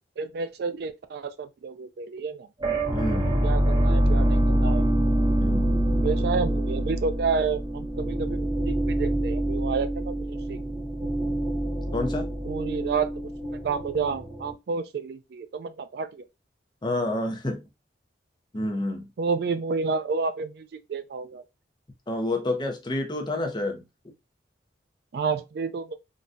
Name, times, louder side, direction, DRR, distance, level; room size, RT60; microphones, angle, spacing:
voice 1, 0.2-2.5 3.4-4.8 6.0-10.6 12.5-13.1 13.5-16.2 19.2-21.4 25.1-25.9, right 5 dB, 60° right, 0.3 m, -30 dB
sound 1, 2.6-14.5, right 1 dB, 25° right, 0.7 m, -25 dB
voice 2, 2.9-3.5 5.4-5.7 11.9-12.3 16.8-17.6 18.5-19.1 22.1-23.8, left 2 dB, 25° left, 0.6 m, -29 dB
3.8 x 2.2 x 2.5 m
head